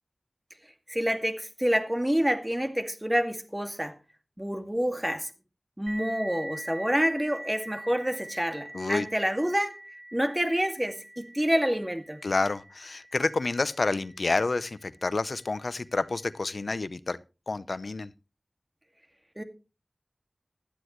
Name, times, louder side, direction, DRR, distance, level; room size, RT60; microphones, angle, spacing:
voice 1, 0.9-3.9 4.4-5.3 5.8-9.8 10.1-12.2 19.4-19.5, equal, 15° right, 2.1 m, -28 dB
sound 1, 5.9-15.1, right 1 dB, 40° right, 6.9 m, -44 dB
voice 2, 8.7-9.1 12.2-17.2 17.5-18.1, left 3 dB, 80° left, 0.7 m, -29 dB
16.0 x 12.0 x 3.1 m
wide cardioid pair, 50°, 0 cm